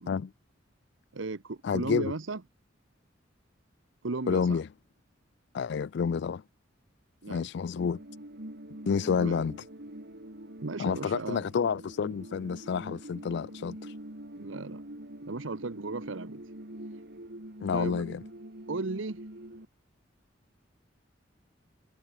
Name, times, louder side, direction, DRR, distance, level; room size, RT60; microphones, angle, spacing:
voice 1, 1.1-2.4 4.0-4.6 7.2-7.5 9.2-9.5 10.6-11.5 14.4-14.8 15.2-16.4 17.7-18.0 18.7-19.2, right 3 dB, 80° right, 1.0 m, -35 dB
voice 2, 1.6-2.1 4.3-4.7 5.5-6.4 7.3-8.0 8.9-9.6 10.8-13.9 17.6-18.2, left 6 dB, 60° left, 0.4 m, -29 dB
sound 1, 7.8-19.7, right 1 dB, 60° right, 3.5 m, -45 dB
head